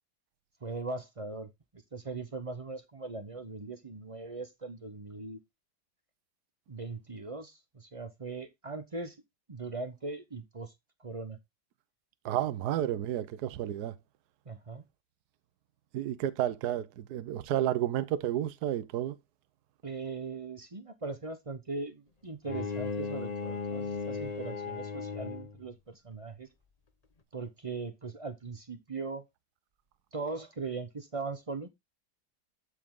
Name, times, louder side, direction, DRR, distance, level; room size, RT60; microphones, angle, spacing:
voice 1, 0.6-1.5 1.9-5.4 6.7-9.2 9.5-10.7 11.0-11.4 14.5-14.8 19.8-26.5 27.3-29.2 30.1-31.7, right 3 dB, 40° right, 0.5 m, -39 dB
voice 2, 12.2-13.9 15.9-19.2, right 11 dB, 65° right, 1.2 m, -31 dB
Bowed string instrument, 22.4-25.7, left 4 dB, 30° left, 0.7 m, -36 dB
12.5 x 4.9 x 3.7 m
omnidirectional pair, 2.1 m